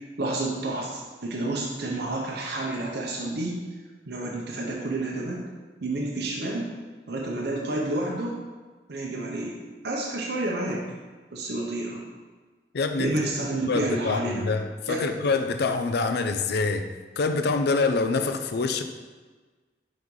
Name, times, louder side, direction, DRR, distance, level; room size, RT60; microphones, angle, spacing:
voice 1, 0.2-3.5 4.1-5.4 5.8-6.7 7.1-8.4 8.9-9.5 9.8-10.9 11.3-12.0 13.0-14.5 14.9-15.1, right 2 dB, 65° right, -2 dB, 0.8 m, -29 dB
voice 2, 12.7-13.2 13.7-16.9 17.2-18.8, left 4 dB, 65° left, 8 dB, 0.5 m, -25 dB
5.2 x 4.1 x 4.6 m, 1.4 s
head